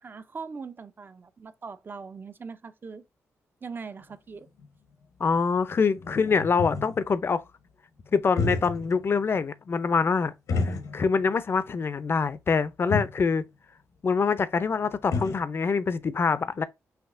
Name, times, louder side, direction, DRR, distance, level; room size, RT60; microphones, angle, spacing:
voice 1, 0.0-3.0 3.6-4.5, right 5 dB, 35° right, 0.6 m, -41 dB
sound 1, 4.1-4.2 4.6-4.7 5.3-5.4 5.7-7.1 8.2-9.0 9.3-9.4 10.5-11.3 11.6-11.7 12.6-12.7 12.9-13.2 14.6-14.7 14.8-15.5, left 3 dB, 75° left, 0.9 m, -31 dB
voice 2, 5.2-7.4 8.1-10.3 10.6-13.5 14.0-16.6, left 5 dB, 45° left, 0.5 m, -25 dB
5.7 x 2.9 x 2.5 m
cardioid pair, 75°, 6 cm